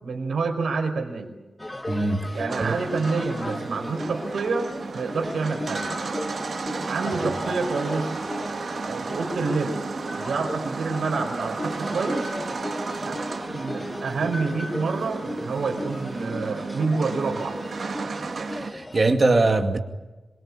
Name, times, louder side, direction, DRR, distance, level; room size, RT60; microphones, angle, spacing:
voice 1, 0.0-1.3 2.3-5.9 6.9-8.1 8.9-9.8 10.2-12.3 13.0-13.2 13.4-17.6, right 4 dB, 85° right, 4.8 m, -28 dB
sound 1, 1.6-19.1, left 1 dB, 10° left, 1.3 m, -36 dB
voice 2, 1.9-2.7 7.1-7.3 18.5-19.8, right 2 dB, 35° right, 2.3 m, -22 dB
sound 2, 2.5-18.7, right 4 dB, 55° right, 2.0 m, -33 dB
26.5 x 23.0 x 8.7 m
wide cardioid pair, 175°, 0 cm